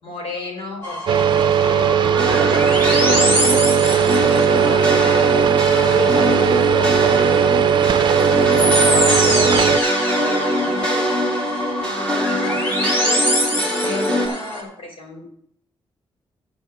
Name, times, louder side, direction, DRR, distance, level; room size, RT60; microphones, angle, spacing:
voice 1, 0.0-3.5 4.2-7.9 8.4-9.8 10.1-11.1 12.1-15.3, left 3 dB, 80° left, 2 dB, 4.0 m, -33 dB
sound 1, 0.8-14.6, equal, 25° left, 3.4 m, -25 dB
sound 2, 1.1-9.8, right 8 dB, 55° right, 0.5 m, -17 dB
sound 3, 2.2-14.3, equal, 10° left, 2.9 m, -22 dB
11.5 x 5.3 x 7.3 m, 0.69 s
wide cardioid pair, 160°, 9 cm